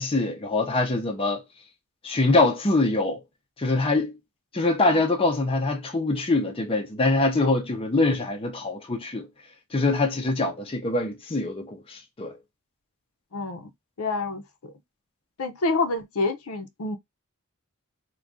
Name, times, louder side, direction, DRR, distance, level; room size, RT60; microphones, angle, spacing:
voice 1, 0.0-1.4 2.0-3.2 3.6-4.1 4.5-9.3 9.7-12.4, left 2 dB, 25° left, 0.5 m, -24 dB
voice 2, 13.3-13.7 14.0-14.7 15.4-17.0, left 3 dB, 70° left, 0.6 m, -28 dB
2.6 x 2.3 x 3.5 m
head